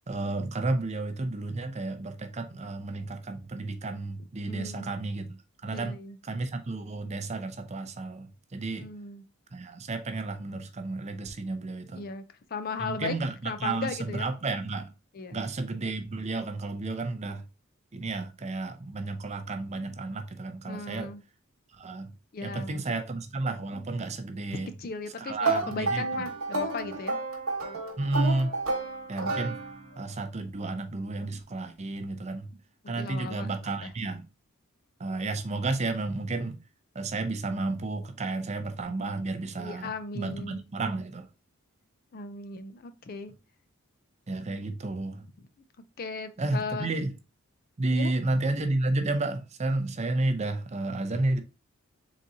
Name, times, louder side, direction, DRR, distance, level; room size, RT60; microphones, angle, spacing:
voice 1, 0.1-5.3 5.6-6.0 6.2-8.3 8.5-8.9 9.5-12.0 12.8-14.9 15.3-17.4 17.9-21.1 21.8-22.1 22.4-24.7 25.2-26.2 28.0-28.5 29.1-29.6 30.0-32.5 32.9-34.3 35.0-36.6 37.0-41.3 44.3-45.2 46.4-47.1 47.8-51.4, right 2 dB, 30° right, 0.5 m, -31 dB
voice 2, 4.5-4.9 5.7-6.2 8.7-9.2 11.9-12.2 12.5-13.2 13.4-14.3 15.1-15.4 20.7-21.2 22.3-23.0 24.8-27.2 33.0-33.5 33.8-33.9 39.6-40.6 42.1-43.3 46.0-46.9 47.9-48.1, left 4 dB, 45° left, 0.4 m, -37 dB
sound 1, 25.4-30.1, right 3 dB, 85° right, 1.2 m, -31 dB
4.0 x 3.7 x 2.6 m
head